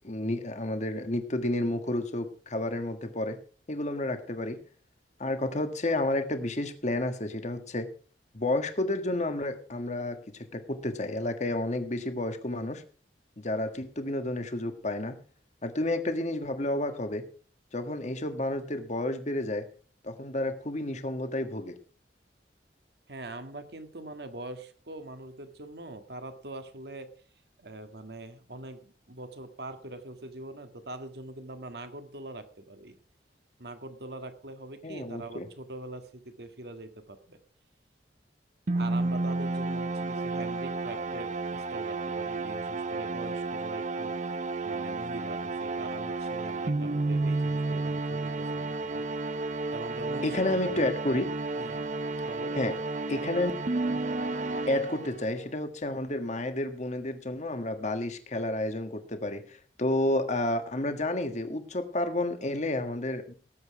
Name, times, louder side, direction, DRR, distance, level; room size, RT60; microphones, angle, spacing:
voice 1, 0.0-3.4 3.7-4.6 5.2-7.9 8.3-12.8 13.4-15.2 15.6-17.2 17.7-19.6 20.0-21.7 34.8-35.4 50.2-51.3 52.6-52.7 53.1-53.5 54.7-63.3, left 1 dB, 40° left, 8 dB, 1.6 m, -30 dB
voice 2, 23.1-27.1 27.6-33.0 33.6-37.4 38.7-44.2 44.6-49.0 49.7-50.4 50.7-50.9 51.6-51.9 52.2-52.6, right 2 dB, 65° right, 8 dB, 1.8 m, -43 dB
sound 1, 38.7-55.4, right 3 dB, 45° right, 0.7 m, -32 dB
18.5 x 8.2 x 4.8 m, 0.41 s
head